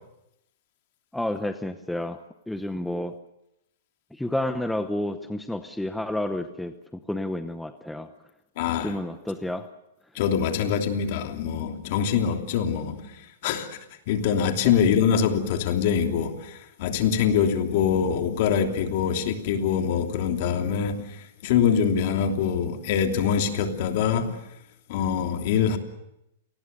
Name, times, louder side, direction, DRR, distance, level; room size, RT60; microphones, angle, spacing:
voice 1, 1.1-3.2 4.1-8.1 8.8-9.7, left 1 dB, 5° left, 9 dB, 0.8 m, -30 dB
voice 2, 8.6-8.9 10.1-13.1 13.4-13.7 14.1-21.0 21.4-24.3 24.9-25.8, left 7 dB, 50° left, 5 dB, 3.1 m, -24 dB
28.0 x 20.0 x 6.8 m, 0.85 s
hypercardioid pair, 150°, 0 cm